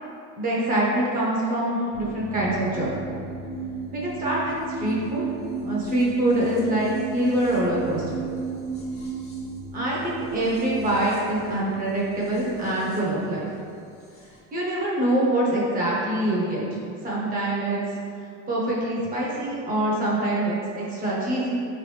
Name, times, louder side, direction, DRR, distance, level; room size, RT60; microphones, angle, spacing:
voice 1, 0.4-3.0 3.9-5.2 5.6-8.2 9.7-13.5 14.5-16.7 17.0-17.8 18.5-21.6, right 1 dB, 25° right, -6 dB, 0.8 m, -25 dB
sound 1, 1.9-14.4, right 4 dB, 20° left, 0.6 m, -35 dB
4.8 x 3.1 x 3.2 m, 2.5 s
cardioid pair, 165°, 37 cm